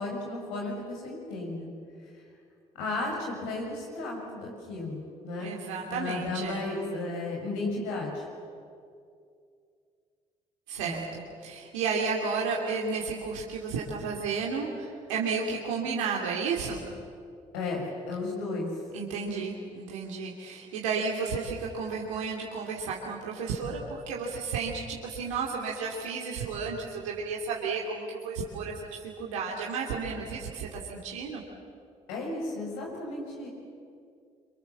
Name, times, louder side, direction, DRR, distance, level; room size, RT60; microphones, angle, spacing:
voice 1, 0.0-1.7 2.7-5.5 5.9-8.2 10.8-11.0 17.5-18.7 32.1-33.5, left 2 dB, 85° left, -1 dB, 7.0 m, -34 dB
voice 2, 5.4-6.6 10.7-16.8 18.9-31.4, right 5 dB, 90° right, -3 dB, 2.9 m, -32 dB
27.0 x 26.5 x 7.3 m, 2.4 s
hypercardioid pair, 55°, 16 cm